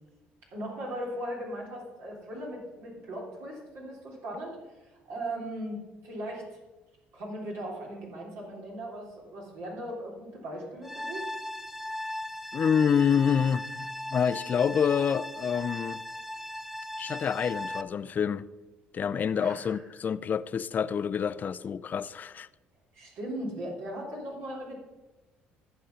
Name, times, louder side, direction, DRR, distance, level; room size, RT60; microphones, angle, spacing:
voice 1, 0.5-6.6 7.1-11.3 19.2-19.8 22.9-24.8, right 1 dB, 70° right, 3.3 m, -38 dB
sound 1, 10.8-17.8, left 1 dB, 5° right, 0.6 m, -38 dB
voice 2, 12.5-13.9 14.1-16.0 17.0-18.4 18.9-22.5, left 7 dB, 45° left, 0.4 m, -27 dB
13.5 x 5.3 x 5.7 m
supercardioid pair, 75°, 4 cm